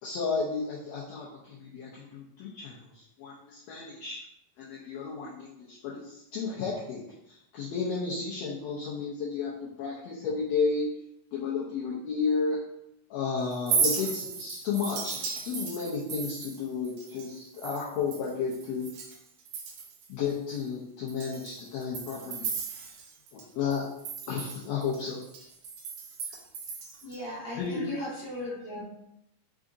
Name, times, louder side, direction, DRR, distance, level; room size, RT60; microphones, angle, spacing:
voice 1, 0.0-4.2 4.6-7.0 7.3-9.5 9.8-10.9 11.3-12.6 13.1-18.8 20.1-22.5 23.3-23.9 24.3-25.2 27.5-28.7, left 5 dB, 75° left, -6 dB, 1.7 m, -33 dB
Chink clink, 13.5-19.2 19.5-20.1 20.5-20.6 21.1-23.4 23.7-27.2, right 5 dB, 80° right, 2.0 m, -35 dB
voice 2, 27.0-28.8, left 1 dB, 45° left, -6 dB, 1.5 m, -37 dB
4.8 x 3.8 x 2.5 m, 0.81 s
omnidirectional pair, 3.7 m